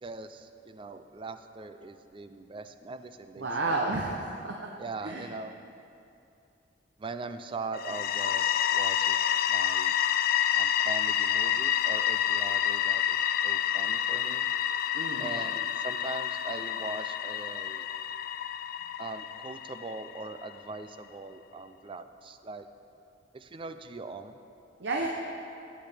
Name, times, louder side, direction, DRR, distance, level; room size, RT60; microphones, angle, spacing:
voice 1, 0.0-3.7 4.8-5.6 7.0-9.2 9.5-9.9 10.5-14.5 15.2-17.9 19.0-22.7 23.3-24.4, right 3 dB, 30° right, 10 dB, 0.4 m, -41 dB
voice 2, 3.4-4.7 5.0-5.3 14.9-15.3 24.8-25.1, right 2 dB, 70° right, 0 dB, 0.8 m, -31 dB
sound 1, 7.7-20.4, left 10 dB, 50° left, 0.3 m, -29 dB
14.5 x 8.8 x 3.4 m, 2.7 s
head